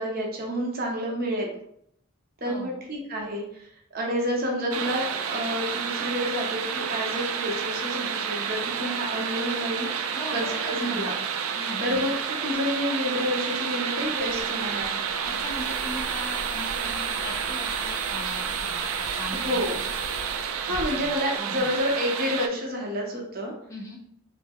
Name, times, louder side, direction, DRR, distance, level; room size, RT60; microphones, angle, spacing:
voice 1, 0.0-1.5 2.4-11.1 11.8-12.1 12.4-14.9 19.3-19.8 20.7-23.5, equal, 45° right, -1 dB, 0.7 m, -29 dB
voice 2, 2.4-2.8 10.1-11.3 11.5-12.0 15.3-19.6 20.7-21.7 23.7-24.0, equal, 15° left, -1 dB, 0.4 m, -39 dB
sound 1, 4.7-22.5, right 7 dB, 85° right, 0.3 m, -30 dB
sound 2, 14.0-21.9, right 2 dB, 15° right, 0.8 m, -41 dB
3.3 x 2.1 x 3.4 m, 0.73 s
head